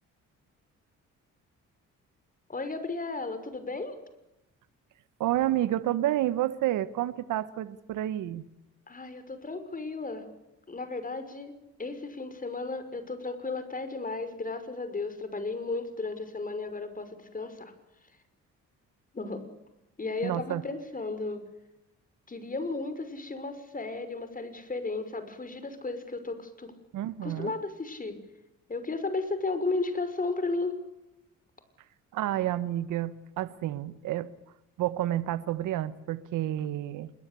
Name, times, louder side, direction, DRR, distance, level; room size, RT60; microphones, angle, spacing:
voice 1, 2.5-4.0 8.9-10.3 10.7-11.5 11.8-17.7 19.1-19.4 20.0-21.4 22.3-26.7 27.2-28.2 28.7-30.7, left 3 dB, 30° left, 10 dB, 6.0 m, -34 dB
voice 2, 5.2-8.4 20.2-20.6 26.9-27.5 32.1-34.3 34.8-37.1, right 13 dB, 85° right, 15 dB, 1.4 m, -30 dB
27.5 x 22.5 x 8.6 m, 0.93 s
cardioid pair, 90°, 30 cm